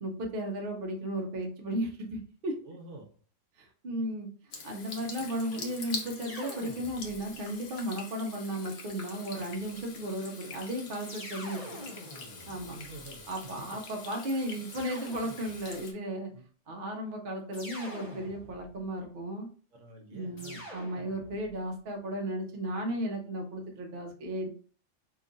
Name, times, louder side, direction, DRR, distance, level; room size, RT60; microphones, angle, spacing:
voice 1, 0.0-2.6 3.6-4.3 4.6-11.6 12.5-12.8 13.3-16.3 16.7-19.5 20.1-24.5, right 1 dB, 50° right, 1 dB, 0.8 m, -35 dB
voice 2, 2.6-3.1 12.7-13.6 16.3-16.4 19.7-20.7, right 2 dB, 70° right, 2 dB, 1.1 m, -48 dB
Water tap faucet / Sink (filling or washing), 4.5-15.9, left 3 dB, 60° left, 1.0 m, -44 dB
sound 1, 6.2-7.4 8.9-9.8 11.0-13.4 14.7-15.8 17.5-18.9 20.4-21.6, equal, 35° left, 0.7 m, -46 dB
2.9 x 2.4 x 3.8 m, 0.43 s
omnidirectional pair, 1.3 m